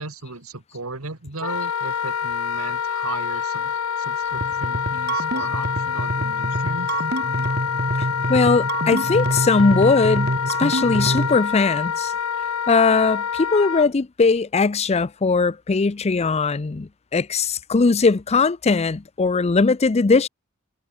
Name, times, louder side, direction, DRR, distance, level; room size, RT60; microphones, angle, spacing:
voice 1, 0.0-7.0, right 3 dB, 80° right, 2.4 m, -36 dB
Wind instrument woodwind instrument, 1.4-13.9, left 7 dB, 90° left, 0.7 m, -26 dB
sound 1, 4.3-11.4, right 2 dB, 50° right, 1.8 m, -26 dB
voice 2, 8.0-12.1 12.7-20.3, left 4 dB, 30° left, 0.5 m, -20 dB
head